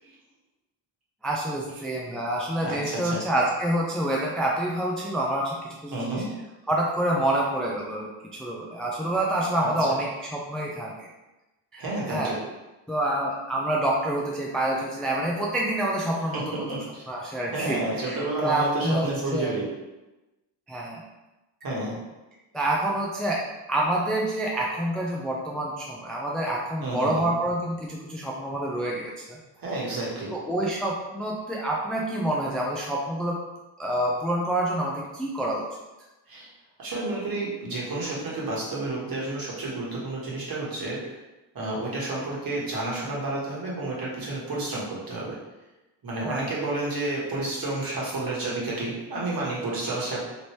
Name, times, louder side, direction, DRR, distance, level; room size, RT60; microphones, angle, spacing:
voice 1, 1.2-6.2 6.7-11.1 11.7-12.3 12.9-16.6 17.1-19.1 19.3-19.5 20.7-21.0 22.5-23.4 23.7-29.4 30.3-33.4 33.8-35.6 46.2-46.5, right 1 dB, ahead, -3 dB, 0.4 m, -27 dB
voice 2, 2.6-3.2 5.9-6.3 9.6-9.9 11.8-12.4 16.3-17.1 17.5-19.7 21.6-22.0 26.8-27.3 29.6-30.3 36.3-36.5 36.8-41.2 41.5-45.4 46.0-50.2, right 2 dB, 45° right, -5 dB, 1.4 m, -30 dB
3.0 x 2.6 x 3.2 m, 1.1 s
supercardioid pair, 65°, 50 cm